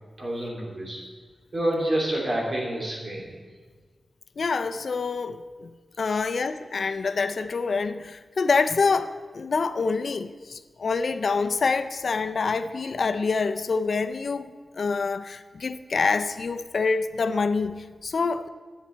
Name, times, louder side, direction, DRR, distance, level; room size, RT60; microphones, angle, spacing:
voice 1, 0.2-1.0 1.5-3.3 6.1-6.2, right 1 dB, 50° right, 2.8 m, -28 dB
voice 2, 4.4-5.7 6.0-18.5, left 4 dB, 65° left, 0.4 m, -26 dB
11.5 x 9.1 x 4.5 m
wide cardioid pair, 115°, 0 cm